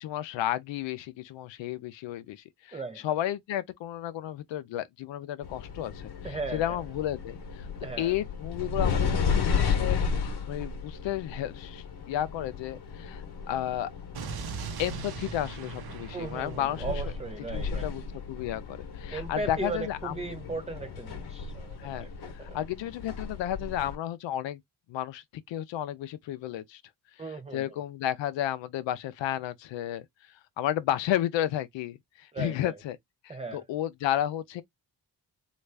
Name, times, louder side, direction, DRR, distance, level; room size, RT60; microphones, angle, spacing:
voice 1, 0.0-7.7 8.0-13.9 14.8-17.0 17.5-18.0 18.3-20.2 21.8-22.1 22.3-24.6 24.9-26.8 27.3-30.1 30.6-33.0 33.2-34.6, left 12 dB, 90° left, 0.5 m, -32 dB
voice 2, 2.7-3.0 6.2-6.8 7.8-8.1 16.1-17.9 19.1-22.6 27.2-27.7 32.3-32.8 33.3-33.6, right 3 dB, 15° right, 0.4 m, -37 dB
sound 1, 5.4-24.0, left 6 dB, 60° left, 1.0 m, -34 dB
Explosion, 14.1-18.2, right 6 dB, 60° right, 0.7 m, -41 dB
3.1 x 2.4 x 3.3 m
cardioid pair, 65°, 43 cm